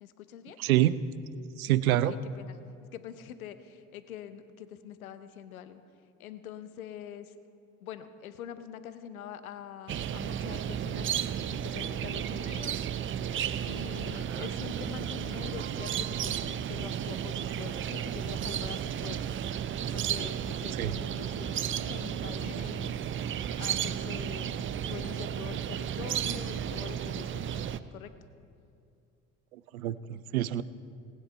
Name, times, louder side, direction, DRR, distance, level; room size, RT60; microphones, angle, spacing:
voice 1, 0.0-0.6 1.9-2.6 2.9-5.8 6.2-7.3 7.8-12.9 13.6-19.3 19.9-23.0 23.6-27.7 27.9-28.1, left 9 dB, 85° left, 12 dB, 0.8 m, -44 dB
voice 2, 0.6-1.0 1.6-2.2 14.3-14.5 20.8-20.9 29.5-30.6, right 13 dB, 85° right, 16 dB, 0.5 m, -27 dB
sound 1, 9.9-27.8, right 9 dB, 30° right, 0.5 m, -33 dB
19.0 x 9.3 x 4.5 m, 2.4 s
hypercardioid pair, 60°, 42 cm